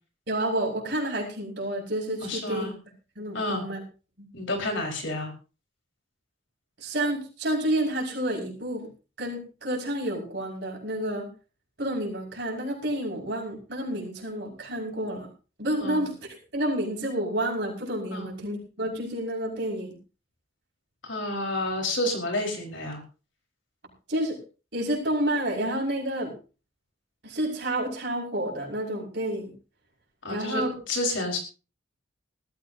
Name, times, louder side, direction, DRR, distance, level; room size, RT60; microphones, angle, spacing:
voice 1, 0.3-2.7 3.2-3.8 4.2-4.3 6.8-8.9 9.2-11.3 11.8-15.3 15.6-16.1 16.5-20.0 24.1-24.4 24.7-26.3 27.2-29.5 30.3-30.7, right 1 dB, 60° right, -2 dB, 5.8 m, -29 dB
voice 2, 2.2-2.7 3.3-3.7 4.3-5.3 15.8-16.1 18.1-18.4 21.0-23.0 30.2-30.6 30.9-31.4, left 1 dB, 75° left, 2 dB, 4.6 m, -30 dB
20.0 x 14.0 x 2.8 m, 0.34 s
head